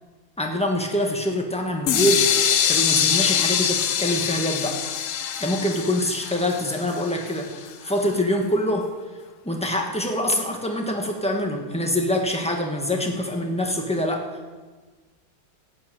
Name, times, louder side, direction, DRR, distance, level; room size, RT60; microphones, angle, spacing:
voice 1, 0.4-2.3 2.7-4.8 5.4-7.5 7.8-8.9 9.4-14.3, left 1 dB, 5° left, 2 dB, 1.2 m, -25 dB
sound 1, 1.9-7.7, left 9 dB, 65° left, 0.8 m, -24 dB
16.0 x 5.9 x 8.8 m, 1.3 s
omnidirectional pair, 2.1 m